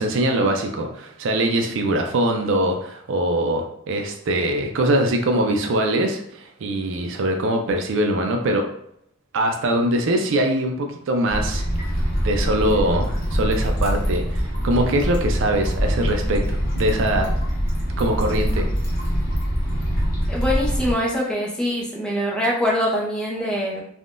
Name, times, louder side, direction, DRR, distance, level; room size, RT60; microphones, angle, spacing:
voice 1, 0.0-8.7 9.3-11.9 12.2-17.3 18.0-18.7, right 1 dB, 65° right, 4 dB, 0.4 m, -22 dB
sound 1, 11.3-20.9, equal, 40° left, 0.9 m, -24 dB
voice 2, 20.3-23.8, equal, 5° left, -4 dB, 0.6 m, -23 dB
3.5 x 2.2 x 2.5 m, 0.71 s
head